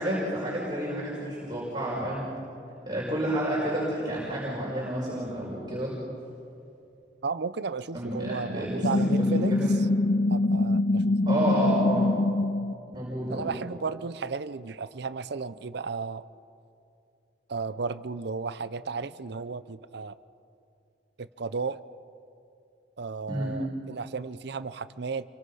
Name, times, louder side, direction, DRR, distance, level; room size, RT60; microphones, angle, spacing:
voice 1, 0.0-2.3 2.9-5.9 7.9-9.7 11.3-12.1 12.9-13.5 23.3-23.5, right 1 dB, 25° right, -6 dB, 5.5 m, -30 dB
voice 2, 7.2-9.5 10.3-11.2 13.3-16.2 17.5-20.2 21.2-21.8 23.0-25.2, right 4 dB, 65° right, 14 dB, 0.7 m, -34 dB
sound 1, 8.8-12.7, left 2 dB, 45° left, 0.6 m, -24 dB
28.5 x 23.0 x 5.6 m, 2.6 s
head